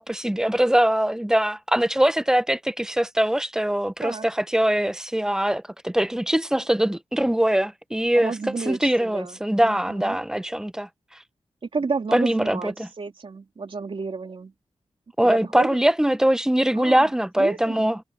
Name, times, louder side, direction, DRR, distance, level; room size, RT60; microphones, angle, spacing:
voice 1, 0.0-8.4 8.7-10.9 12.1-12.9 15.2-18.0, right 1 dB, 5° right, 0.7 m, -22 dB
voice 2, 8.2-10.2 11.7-14.5 15.2-15.7 16.7-17.1 17.4-17.9, right 4 dB, 55° right, 3.7 m, -31 dB
wide cardioid pair, 85°, 11 cm